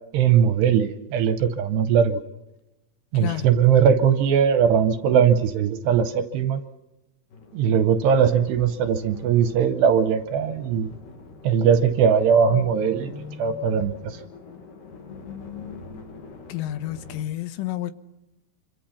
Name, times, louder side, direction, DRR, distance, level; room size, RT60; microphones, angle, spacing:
voice 1, 0.1-2.2 3.1-6.6 7.5-10.9 11.4-13.1 13.4-14.2, right 7 dB, 75° right, 2.7 m, -20 dB
voice 2, 3.2-3.5 16.5-17.9, left 14 dB, 90° left, 3.6 m, -30 dB
sound 1, 7.3-17.2, left 3 dB, 55° left, 2.9 m, -42 dB
26.5 x 25.0 x 5.8 m
omnidirectional pair, 5.6 m